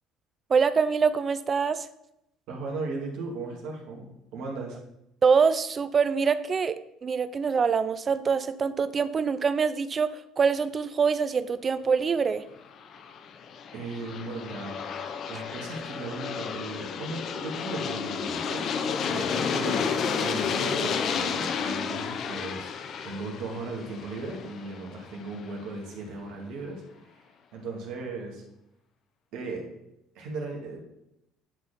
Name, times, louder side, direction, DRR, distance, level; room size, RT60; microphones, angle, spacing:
voice 1, 0.5-1.9 5.2-12.4, right 5 dB, 40° right, 13 dB, 0.5 m, -25 dB
voice 2, 2.5-4.8 13.7-14.8 15.3-19.8 20.2-26.8 27.5-28.4 29.3-29.7 30.1-30.8, right 3 dB, 70° right, 0 dB, 2.5 m, -37 dB
Aircraft, 12.7-25.5, left 6 dB, 55° left, 0.8 m, -32 dB
10.0 x 4.4 x 5.2 m, 0.84 s
hypercardioid pair, 70°, 0 cm